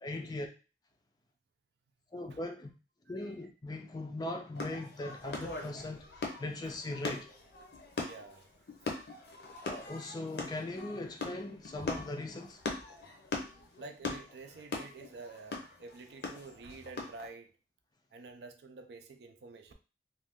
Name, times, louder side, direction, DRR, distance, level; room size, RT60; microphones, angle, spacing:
voice 1, 0.0-0.5 2.1-2.7 3.1-6.0 6.4-7.3 9.6-12.6, left 2 dB, 20° left, 0.3 m, -39 dB
voice 2, 3.1-3.4 5.2-5.3 6.6-6.8 8.0-8.5 13.8-17.5 18.1-19.7, right 3 dB, 70° right, 0.4 m, -49 dB
sound 1, 4.5-17.3, left 3 dB, 65° left, 0.6 m, -41 dB
2.6 x 2.3 x 3.5 m
head